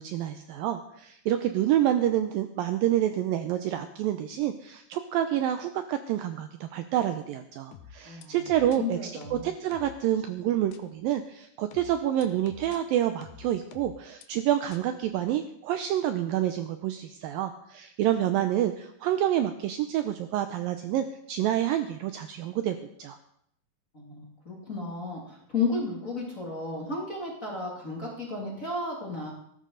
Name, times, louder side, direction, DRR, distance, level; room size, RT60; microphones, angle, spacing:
voice 1, 0.0-23.2, right 11 dB, 85° right, 8 dB, 2.0 m, -28 dB
sound 1, 7.7-8.8 9.2-10.0 10.7-10.8 11.7-12.8 13.2-14.2 14.7-14.8, left 8 dB, 75° left, 1.8 m, -48 dB
voice 2, 8.1-8.4 8.8-9.5 23.9-29.3, left 3 dB, 25° left, -3 dB, 2.3 m, -33 dB
18.5 x 13.5 x 4.0 m, 0.72 s
omnidirectional pair, 4.8 m